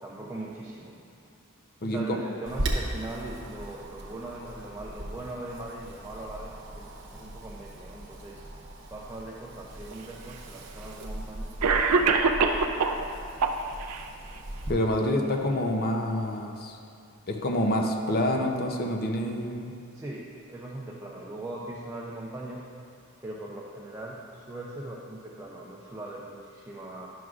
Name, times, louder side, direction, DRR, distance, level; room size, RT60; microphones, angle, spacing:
voice 1, 0.0-1.0 1.9-8.4 8.9-12.7 19.9-20.2 20.5-22.6 23.2-27.1, right 2 dB, 15° right, -4 dB, 0.4 m, -40 dB
voice 2, 1.8-2.2 14.7-16.8 17.3-19.8, left 1 dB, 45° left, 2 dB, 0.6 m, -27 dB
Wind, 2.4-14.7, right 1 dB, 55° right, 0.9 m, -38 dB
Cough, 9.9-10.0 11.0-11.1 11.6-13.0 13.4-14.0, right 4 dB, 90° right, 0.4 m, -23 dB
10.5 x 6.1 x 2.4 m, 2.5 s
head